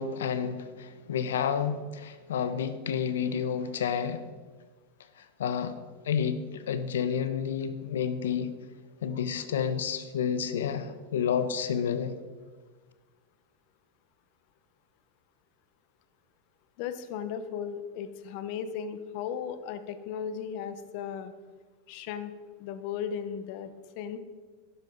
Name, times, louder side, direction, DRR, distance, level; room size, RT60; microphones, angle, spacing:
voice 1, 0.0-4.2 5.2-5.8 6.0-8.5 9.0-12.2, left 7 dB, 85° left, 11 dB, 0.9 m, -30 dB
voice 2, 16.8-21.3 21.9-22.3 22.6-24.2, left 8 dB, 60° left, 11 dB, 1.0 m, -36 dB
12.5 x 10.5 x 4.0 m, 1.4 s
hypercardioid pair, 115°, 0 cm